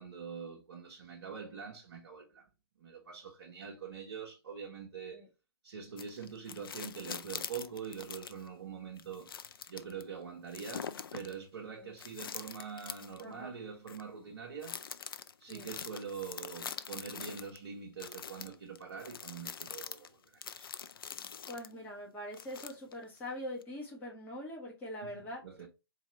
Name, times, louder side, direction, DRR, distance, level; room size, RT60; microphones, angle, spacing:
voice 1, 0.0-2.5 2.8-5.3 5.6-9.4 9.7-14.8 15.4-20.7 25.0-25.7, right 6 dB, 55° right, 1.0 m, -44 dB
sound 1, 6.0-8.5 9.0-10.0 10.5-11.3 12.0-13.2 13.9-14.0 14.6-17.6 18.0-21.7 22.3-23.0 23.6-23.7, left 7 dB, 60° left, 0.4 m, -44 dB
voice 2, 21.5-25.4, left 1 dB, 10° left, 1.4 m, -43 dB
4.2 x 2.8 x 3.1 m
figure-of-eight pair, 130°, 14 cm